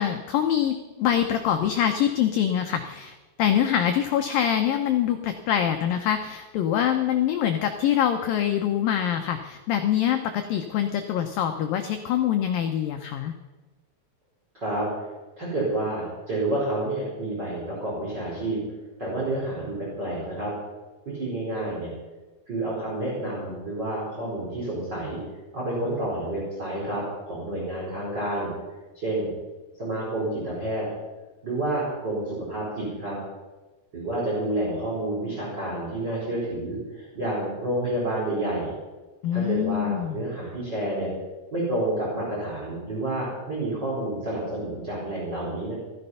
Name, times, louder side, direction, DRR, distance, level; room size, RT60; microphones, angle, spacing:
voice 1, 0.0-13.3 39.2-40.2, left 10 dB, 80° left, 6 dB, 2.0 m, -24 dB
voice 2, 14.5-14.9 15.4-18.6 19.0-20.5 21.1-21.9 22.5-25.2 25.5-28.5 28.9-29.3 29.8-30.8 31.4-33.2 33.9-38.7 39.3-41.1 41.5-45.7, right 1 dB, 25° right, -6 dB, 4.8 m, -29 dB
15.0 x 13.5 x 5.6 m, 1.2 s
omnidirectional pair, 5.0 m